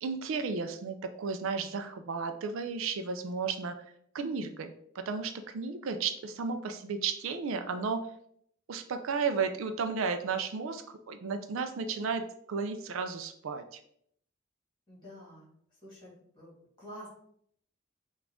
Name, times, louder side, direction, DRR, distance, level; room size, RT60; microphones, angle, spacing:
voice 1, 0.0-3.8 4.1-8.1 8.7-13.8, right 5 dB, 65° right, 8 dB, 0.4 m, -33 dB
voice 2, 14.9-15.5 15.8-16.5 16.8-17.1, equal, 20° left, -5 dB, 1.9 m, -48 dB
5.9 x 2.4 x 3.5 m, 0.68 s
head